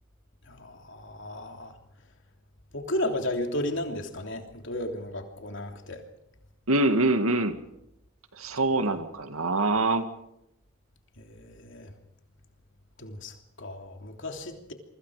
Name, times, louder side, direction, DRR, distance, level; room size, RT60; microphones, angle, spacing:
voice 1, 0.5-1.7 2.7-6.0 11.2-11.9 13.0-14.7, left 1 dB, 60° left, 3 dB, 3.1 m, -34 dB
voice 2, 6.7-7.6 8.4-10.1, right 2 dB, 90° right, 8 dB, 2.0 m, -24 dB
28.0 x 24.0 x 5.0 m, 0.83 s
head